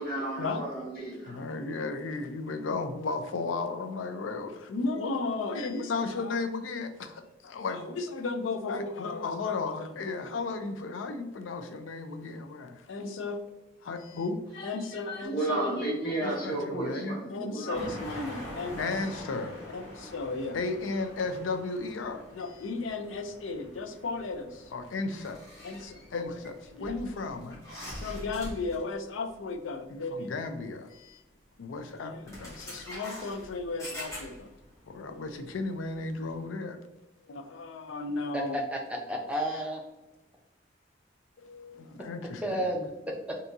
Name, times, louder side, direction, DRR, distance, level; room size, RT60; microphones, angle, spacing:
voice 1, 0.0-1.4 14.5-14.7 15.0-17.9, right 1 dB, 55° left, -10 dB, 1.3 m, -32 dB
voice 2, 1.2-13.4 13.8-15.7 16.2-27.6 28.0-31.2 31.6-34.5 34.9-36.8 37.2-38.6 39.3-39.6 41.4-42.7, left 3 dB, 90° left, 8 dB, 0.4 m, -34 dB
sound 1, 17.7-29.0 29.3-29.5 30.6-30.7 31.7-31.9 32.2-36.5, equal, 15° left, 1.1 m, -45 dB
voice 3, 38.3-39.8 42.4-43.4, equal, 5° right, 0 dB, 0.4 m, -32 dB
3.5 x 2.7 x 2.6 m, 1.0 s
head